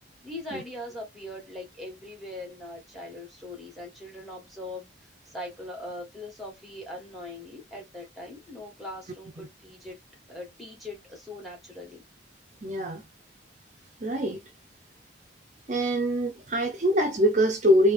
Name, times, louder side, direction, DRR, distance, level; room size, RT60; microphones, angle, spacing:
voice 1, 0.2-10.0 10.3-12.0, left 1 dB, ahead, 1.4 m, -41 dB
voice 2, 12.6-13.0 14.0-14.4 15.7-17.9, equal, 40° right, 0.6 m, -24 dB
3.2 x 2.8 x 3.3 m
head